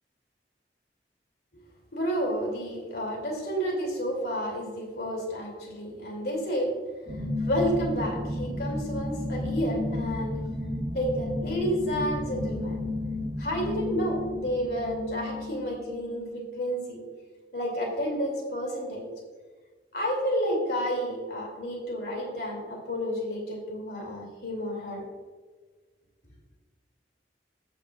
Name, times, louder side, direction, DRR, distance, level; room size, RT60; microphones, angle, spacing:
voice 1, 1.9-6.7 7.4-10.4 10.9-12.9 13.4-17.0 17.5-19.1 19.9-25.1, equal, 65° left, 0 dB, 2.8 m, -30 dB
sound 1, 7.1-16.5, left 2 dB, 45° right, 1.5 m, -33 dB
13.0 x 8.7 x 2.4 m, 1.4 s
head